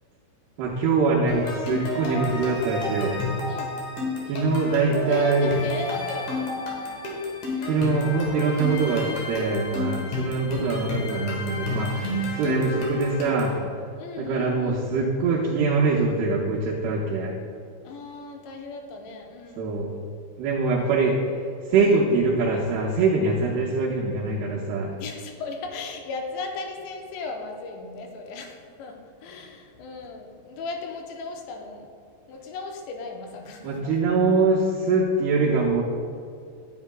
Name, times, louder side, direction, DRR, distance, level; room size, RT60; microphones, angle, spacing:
voice 1, 0.6-3.2 4.3-5.5 7.7-13.5 14.2-17.3 19.6-19.9 20.4-21.2 21.7-24.9 33.6-35.8, right 3 dB, 80° right, -4 dB, 2.5 m, -23 dB
sound 1, 1.3-13.6, left 2 dB, 65° left, 1.9 m, -31 dB
voice 2, 5.1-6.4 7.6-7.9 12.4-12.7 14.0-14.9 17.8-19.7 21.8-22.1 25.0-31.9 32.3-34.0, left 3 dB, 85° left, 2 dB, 2.9 m, -36 dB
9.4 x 8.0 x 2.2 m, 2.3 s
omnidirectional pair, 5.1 m